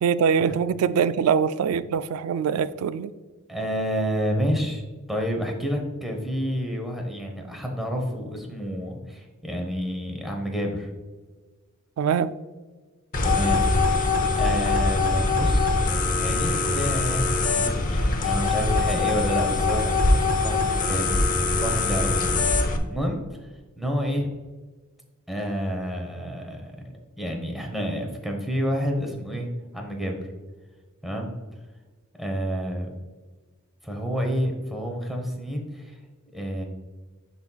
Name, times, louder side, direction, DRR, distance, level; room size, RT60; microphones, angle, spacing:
voice 1, 0.0-3.1 12.0-12.3, right 7 dB, 85° right, 15 dB, 0.3 m, -23 dB
voice 2, 3.5-10.9 13.2-14.0 14.4-15.8 16.2-20.0 20.2-21.1 21.6-22.4 22.9-23.2 23.8-24.3 25.3-26.8 27.2-29.5 29.7-30.2 31.0-31.3 32.2-32.9 33.8-36.0 36.3-36.6, equal, ahead, 1 dB, 1.0 m, -29 dB
sound 1, 13.1-22.8, left 3 dB, 40° left, 0.7 m, -22 dB
11.5 x 4.1 x 2.3 m, 1.3 s
head